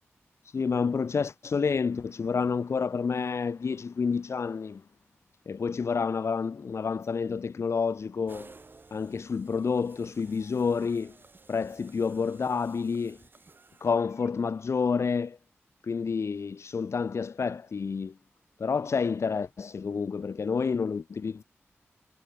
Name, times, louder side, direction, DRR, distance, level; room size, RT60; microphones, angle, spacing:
voice 1, 0.4-4.8 5.5-8.5 8.9-11.1 11.5-13.2 13.8-15.4 15.8-18.1 18.6-21.4, left 5 dB, 65° left, 2.1 m, -29 dB
sound 1, 8.3-14.3, right 3 dB, 45° right, 7.8 m, -55 dB
wide cardioid pair, 80°, 5 cm